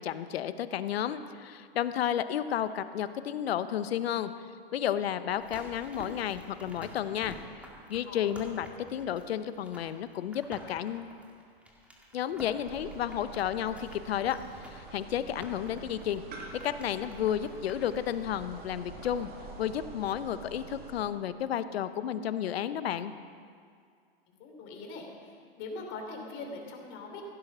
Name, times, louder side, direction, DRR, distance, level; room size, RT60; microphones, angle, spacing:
voice 1, 0.0-4.3 4.7-7.4 7.9-11.1 12.1-14.4 14.7-16.2 16.6-19.3 19.6-23.1, left 10 dB, 75° left, 12 dB, 0.9 m, -32 dB
sound 1, 5.3-19.3 19.6-19.7, equal, 5° right, 2.2 m, -50 dB
voice 2, 8.1-8.5 24.4-27.2, left 3 dB, 40° left, 2 dB, 3.1 m, -42 dB
sound 2, 12.6-21.0, right 4 dB, 30° right, 2.3 m, -46 dB
16.0 x 9.6 x 6.2 m, 2.2 s
hypercardioid pair, 115°, 31 cm